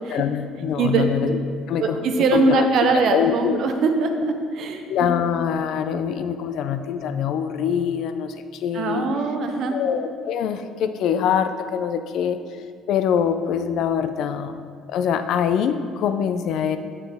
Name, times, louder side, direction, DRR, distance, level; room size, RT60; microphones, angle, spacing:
voice 1, 0.1-1.4 1.7-2.0 2.3-3.6 4.9-9.1 9.7-12.4 12.9-14.6 14.9-16.8, left 8 dB, 55° left, 9 dB, 0.3 m, -24 dB
voice 2, 1.8-5.1 8.7-9.8, right 4 dB, 45° right, 5 dB, 0.6 m, -22 dB
7.3 x 5.9 x 3.4 m, 2.2 s
cardioid pair, 170°, 0 cm